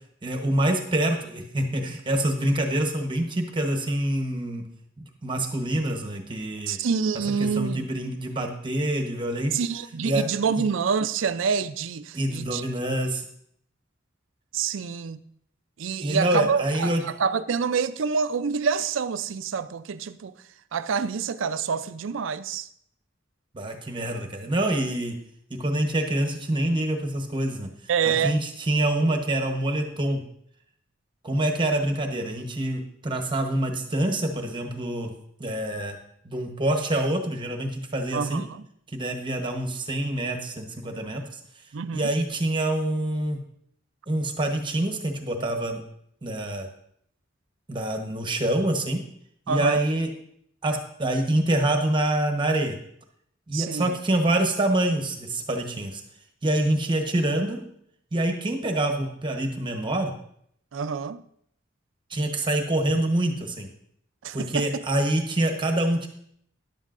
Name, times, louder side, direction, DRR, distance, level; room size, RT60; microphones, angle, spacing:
voice 1, 0.2-4.6 5.2-6.8 7.4-9.6 10.0-10.2 12.1-13.2 16.0-17.0 23.5-25.2 25.5-27.7 28.0-30.2 31.2-35.1 35.4-36.0 36.2-38.4 38.9-41.4 41.9-43.4 44.1-45.8 46.2-46.7 47.7-49.0 49.5-50.1 50.6-52.8 53.5-56.0 56.4-57.6 58.1-60.1 62.1-63.7 64.3-66.1, right 1 dB, 25° right, 1.0 m, -26 dB
voice 2, 6.7-7.9 9.5-12.6 14.5-15.2 15.8-20.3 20.7-22.7 27.9-28.4 38.1-38.6 41.7-42.1 49.5-49.8 53.5-53.9 60.7-61.2 64.2-64.7, right 6 dB, 90° right, 0.5 m, -27 dB
13.5 x 10.5 x 2.5 m
head